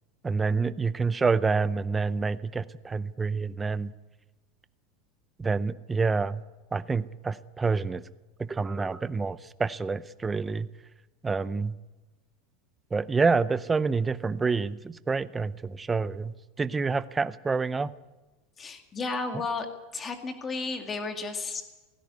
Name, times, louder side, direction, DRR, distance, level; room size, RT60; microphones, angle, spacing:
voice 1, 0.2-3.9 5.4-6.4 6.7-8.0 8.4-10.7 11.2-11.7 12.9-17.9, right 4 dB, 10° right, 15 dB, 0.6 m, -27 dB
voice 2, 18.6-19.7 19.9-21.6, left 3 dB, 20° left, 5 dB, 2.2 m, -33 dB
18.0 x 16.0 x 9.5 m, 1.1 s
supercardioid pair, 160°, 0 cm